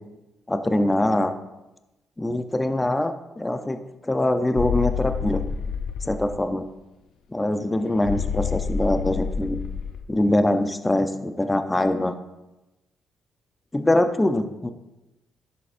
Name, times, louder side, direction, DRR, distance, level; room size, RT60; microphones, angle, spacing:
voice 1, 0.5-1.3 2.2-5.4 6.0-6.7 7.3-9.6 10.1-12.2 13.7-14.7, left 1 dB, 15° left, 9 dB, 0.5 m, -23 dB
sound 1, 4.6-6.4 8.0-10.0, left 6 dB, 75° left, 0.7 m, -28 dB
10.5 x 6.9 x 2.5 m, 0.99 s
cardioid pair, 90°, 0 cm